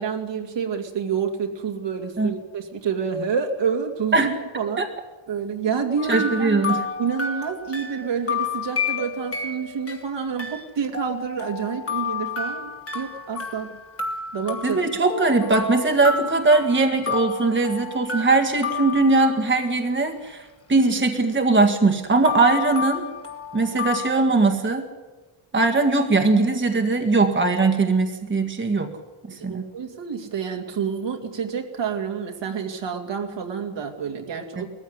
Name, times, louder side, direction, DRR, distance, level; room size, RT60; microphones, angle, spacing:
voice 1, 0.0-4.8 5.3-6.7 7.0-13.8 14.3-14.8 29.5-34.7, right 6 dB, 65° right, 3 dB, 2.6 m, -28 dB
sound 1, 6.0-19.8 22.2-24.1, left 5 dB, 30° left, 2.4 m, -31 dB
voice 2, 6.1-6.8 14.6-23.0 23.5-24.8 25.5-28.9 29.3-29.7, right 3 dB, 25° right, 4 dB, 1.9 m, -20 dB
19.5 x 15.0 x 9.8 m, 1.2 s
cardioid pair, 115°, 47 cm